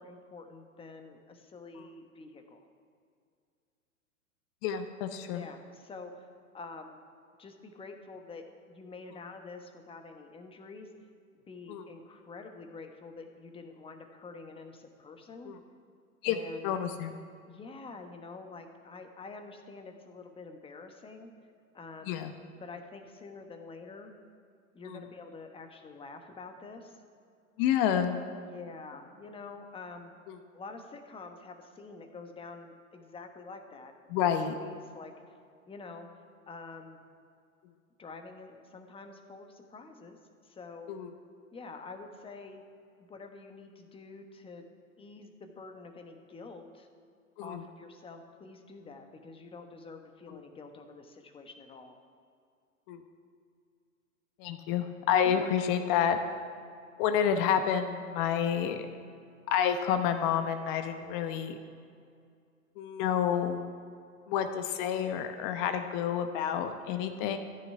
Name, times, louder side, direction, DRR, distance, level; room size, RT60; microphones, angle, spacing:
voice 1, 0.0-2.7 5.3-6.3 6.5-7.0 7.4-10.9 11.3-15.5 16.2-16.7 17.5-21.3 21.7-22.2 22.6-24.1 24.7-27.0 28.4-30.1 30.5-33.9 34.5-35.1 35.7-36.1 36.5-37.0 38.0-40.2 40.4-40.9 41.5-42.6 43.0-44.6 45.0-46.9 47.4-52.0 55.2-55.5, left 3 dB, 15° left, 5 dB, 1.2 m, -47 dB
voice 2, 4.6-5.4 11.7-11.9 15.4-15.6 16.2-16.4 16.6-17.1 22.1-22.3 24.8-25.0 27.6-28.2 30.3-30.4 34.1-34.5 40.9-41.1 47.4-47.6 50.3-50.4 52.9-53.0 54.4-56.2 57.0-58.8 59.5-61.6 62.8-63.7 64.3-67.4, left 8 dB, 40° left, 8 dB, 1.0 m, -29 dB
14.0 x 6.2 x 9.6 m, 2.3 s
hypercardioid pair, 110°, 43 cm